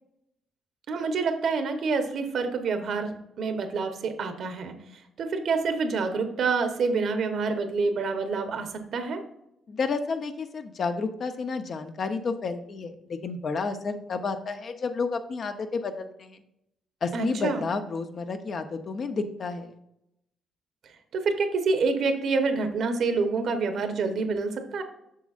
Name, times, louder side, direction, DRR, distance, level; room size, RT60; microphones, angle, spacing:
voice 1, 0.9-9.2 17.1-17.6 21.1-24.8, right 4 dB, 65° right, 7 dB, 1.1 m, -27 dB
voice 2, 9.7-16.4 17.0-19.8, left 4 dB, 50° left, 7 dB, 0.8 m, -31 dB
7.6 x 6.2 x 2.5 m, 0.81 s
cardioid pair, 90°, 0 cm